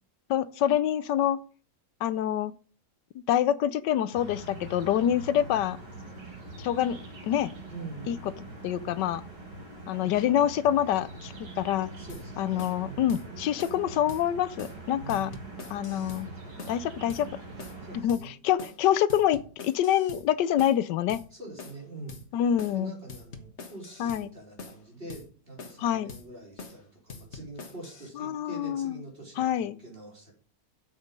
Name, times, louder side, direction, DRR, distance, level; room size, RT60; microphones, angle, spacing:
voice 1, 0.3-1.4 2.0-2.5 3.1-5.8 6.6-7.0 7.3-7.5 8.1-8.2 8.6-9.2 9.9-11.9 12.4-15.3 15.7-16.3 16.7-17.3 18.0-21.2 22.3-22.9 24.0-24.3 25.8-26.1 28.2-29.0 29.4-29.8, left 10 dB, 85° left, 16 dB, 1.3 m, -26 dB
sound 1, 4.1-18.0, right 2 dB, 90° right, 4.2 m, -43 dB
voice 2, 7.7-8.4 10.0-10.3 12.0-13.2 15.0-15.5 17.8-18.4 21.3-22.4 22.7-30.3, right 2 dB, 30° right, -2 dB, 4.4 m, -45 dB
sound 2, 12.1-12.3 12.6-12.8 13.1-13.3 13.6-13.8 14.1-14.2 14.6-14.8 15.1-16.3 16.6-16.8 17.1-17.3 17.6-17.8 18.1-18.3 18.6-18.8 19.1-20.3 20.6-20.8 21.1-21.3 21.6-21.8 22.1-22.3 22.6-22.8 23.1-24.3 24.6-24.8 25.1-25.3 25.6-25.8 26.1-26.3 26.6-26.8 27.1-28.1, left 4 dB, 45° left, 1.6 m, -44 dB
8.8 x 7.4 x 5.4 m, 0.39 s
omnidirectional pair, 1.8 m